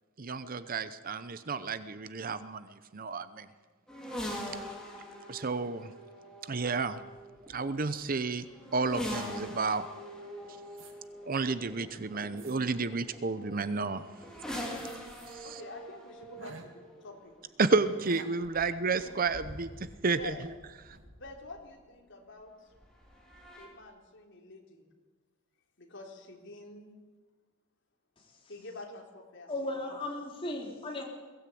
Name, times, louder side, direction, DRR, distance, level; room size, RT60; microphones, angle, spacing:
voice 1, 0.2-3.5 5.3-5.9 6.4-7.0 7.5-8.4 8.7-9.9 11.3-14.0 15.3-15.6 17.6-20.3 20.8-21.0, right 4 dB, 45° right, 13 dB, 0.8 m, -31 dB
sound 1, 3.9-21.6 22.7-23.7, equal, 5° left, 4.2 m, -44 dB
sound 2, 10.8-10.9 11.6-11.7 12.2-12.6 14.7-15.4 15.7-15.8 16.2-16.7 17.9-18.3 18.9-20.6 20.9-21.1, right 2 dB, 75° right, 2.5 m, -52 dB
voice 2, 15.4-17.4 18.6-18.7 20.2-20.4 21.1-22.5 23.6-24.9 25.8-26.9 28.5-29.9, left 2 dB, 60° left, 1 dB, 3.7 m, -47 dB
voice 3, 29.5-31.0, left 2 dB, 25° left, -1 dB, 4.0 m, -36 dB
22.0 x 16.0 x 8.6 m, 1.3 s
head